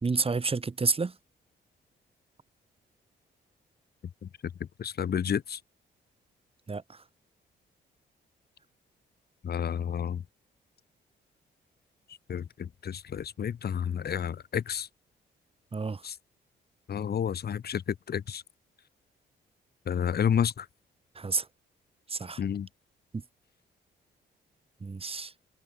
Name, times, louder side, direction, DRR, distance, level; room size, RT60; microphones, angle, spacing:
voice 1, 0.0-1.2 6.7-7.0 15.7-16.0 21.1-21.5 22.1-22.4 23.1-23.2 24.8-25.3, right 4 dB, 30° right, 1.7 m, -30 dB
voice 2, 4.6-5.6 9.4-10.2 12.3-14.9 16.0-16.1 16.9-18.4 19.9-20.7 22.4-22.7, left 8 dB, 55° left, 1.3 m, -30 dB
cardioid pair, 75°, 20 cm